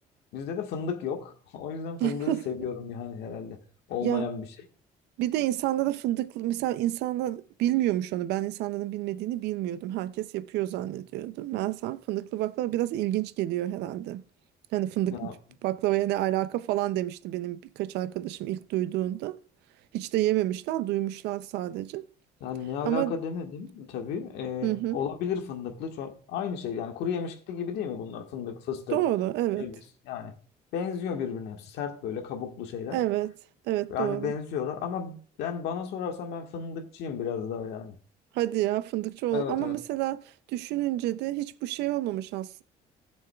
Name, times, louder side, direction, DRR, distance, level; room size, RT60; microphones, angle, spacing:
voice 1, 0.3-3.6 3.9-4.5 15.1-15.4 22.4-29.0 29.6-29.7 30.0-30.3 30.7-33.0 33.9-38.0 39.3-39.8, left 7 dB, 80° left, 1.5 m, -33 dB
voice 2, 2.0-2.4 4.0-4.3 5.2-14.2 14.7-15.3 15.6-19.4 19.9-22.0 22.8-23.1 24.6-25.0 28.9-29.7 32.9-33.3 33.7-34.3 38.3-40.2 40.5-42.6, right 14 dB, 85° right, 0.5 m, -29 dB
16.5 x 7.2 x 2.3 m
cardioid pair, 110°, 17 cm